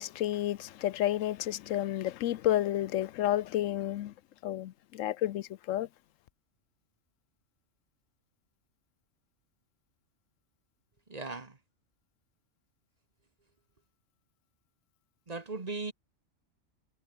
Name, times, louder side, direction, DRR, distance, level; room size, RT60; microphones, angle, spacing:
voice 1, 0.0-4.1 4.4-5.9, left 13 dB, 85° left, 1.0 m, -31 dB
voice 2, 11.1-11.6 15.3-15.9, right 3 dB, 30° right, 1.5 m, -38 dB
omnidirectional pair, 1.3 m